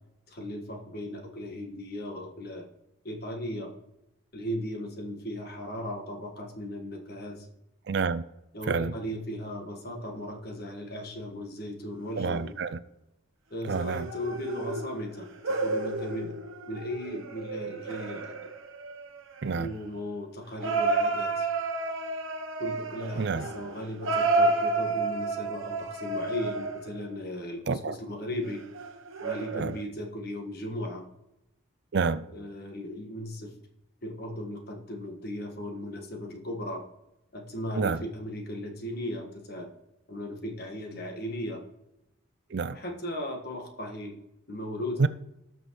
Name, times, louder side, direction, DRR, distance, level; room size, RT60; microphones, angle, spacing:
voice 1, 0.3-2.7 3.0-3.7 4.3-7.5 8.5-12.5 13.5-16.3 16.7-18.4 19.5-21.5 22.6-28.6 29.2-31.0 32.3-33.5 34.0-36.8 37.3-39.7 40.1-41.6 42.7-44.2 44.5-45.1, left 1 dB, 50° left, 1.5 m, -37 dB
voice 2, 7.9-8.2 8.7-8.9 12.2-12.8 13.7-14.1 19.4-19.7 23.2-23.5 27.7-28.0 29.5-29.8 31.9-32.3 37.8-38.0 42.5-42.8 45.0-45.1, right 4 dB, 55° right, 0.4 m, -28 dB
sound 1, 12.0-12.5 13.7-19.7 20.6-27.1 28.4-29.8, right 3 dB, 75° right, 0.9 m, -31 dB
18.0 x 6.2 x 3.1 m
head